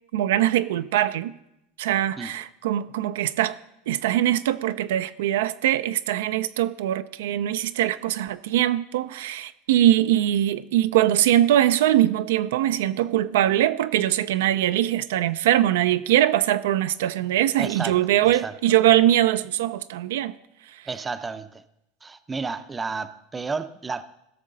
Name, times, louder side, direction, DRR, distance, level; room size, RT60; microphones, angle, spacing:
voice 1, 0.1-1.3 1.8-3.6 3.9-20.3 20.7-20.9, right 12 dB, 85° right, 0.4 m, -22 dB
voice 2, 17.6-18.5 20.9-21.6 22.0-24.0, right 4 dB, 15° right, 0.5 m, -32 dB
16.5 x 6.3 x 3.9 m
supercardioid pair, 120°, 0 cm